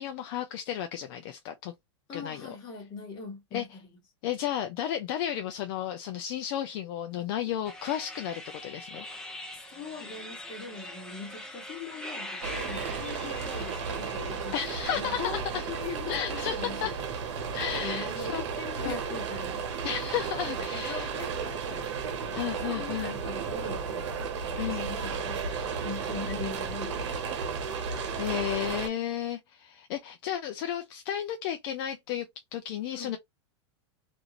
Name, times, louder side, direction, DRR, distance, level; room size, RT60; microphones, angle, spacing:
voice 1, 0.0-1.7 2.1-2.6 3.5-3.8 4.2-9.1 14.5-15.7 16.1-17.0 17.5-18.4 18.8-19.0 19.8-21.1 22.3-23.2 24.6-25.0 27.8-32.3 32.5-33.2, left 10 dB, 50° left, 0.5 m, -33 dB
voice 2, 2.1-3.8 9.5-14.6 14.9-16.9 17.8-19.6 20.5-24.1 24.4-27.1 32.9-33.2, left 4 dB, 30° left, 1.4 m, -41 dB
sound 1, 7.6-14.9, left 1 dB, 5° left, 0.6 m, -42 dB
sound 2, 12.4-28.9, right 6 dB, 75° right, 1.0 m, -34 dB
2.6 x 2.5 x 2.9 m
supercardioid pair, 145°, 15 cm